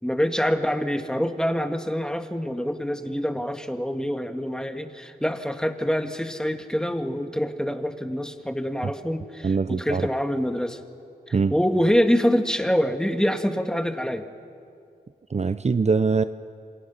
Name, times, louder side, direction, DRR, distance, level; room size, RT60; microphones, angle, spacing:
voice 1, 0.0-10.8 11.3-14.3, equal, 5° left, 6 dB, 2.0 m, -25 dB
voice 2, 9.4-10.1 11.3-11.6 15.3-16.2, right 4 dB, 40° right, 12 dB, 0.7 m, -22 dB
28.5 x 26.5 x 5.8 m, 2.4 s
cardioid pair, 45°, 17 cm